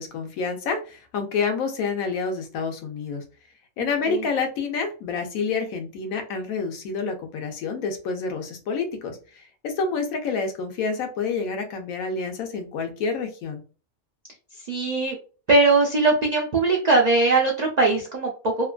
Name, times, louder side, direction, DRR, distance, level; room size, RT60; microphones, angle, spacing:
voice 1, 0.0-3.2 3.8-13.6, left 5 dB, 80° left, 5 dB, 1.1 m, -28 dB
voice 2, 3.8-4.2 14.7-15.2 15.5-18.7, right 3 dB, 85° right, -1 dB, 0.3 m, -20 dB
2.8 x 2.2 x 2.4 m, 0.36 s
omnidirectional pair, 1.5 m